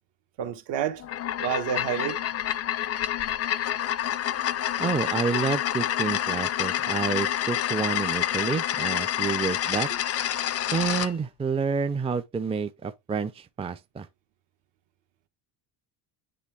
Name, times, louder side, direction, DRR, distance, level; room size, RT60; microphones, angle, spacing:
voice 1, 0.4-1.0 1.4-2.2, right 9 dB, 70° right, 1.5 m, -29 dB
sound 1, 1.0-11.1, left 11 dB, 35° left, 0.5 m, -28 dB
voice 2, 4.8-9.9 10.7-14.1, right 5 dB, 15° right, 0.5 m, -29 dB
10.0 x 3.7 x 3.4 m
cardioid pair, 105°, 45 cm